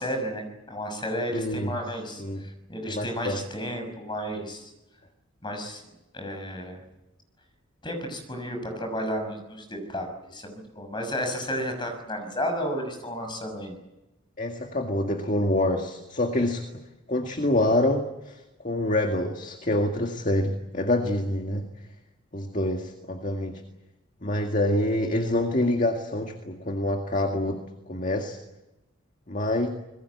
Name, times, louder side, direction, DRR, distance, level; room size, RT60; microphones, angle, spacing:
voice 1, 0.0-4.7 5.4-5.8 6.1-6.8 7.8-13.8, equal, 20° left, 5 dB, 6.2 m, -32 dB
voice 2, 1.3-1.7 2.2-2.5 2.9-3.4 14.4-16.6 17.1-21.6 22.3-23.6 24.2-27.6 27.9-28.4 29.3-29.7, left 1 dB, 35° left, 4 dB, 2.0 m, -26 dB
27.0 x 21.0 x 8.4 m, 0.99 s
head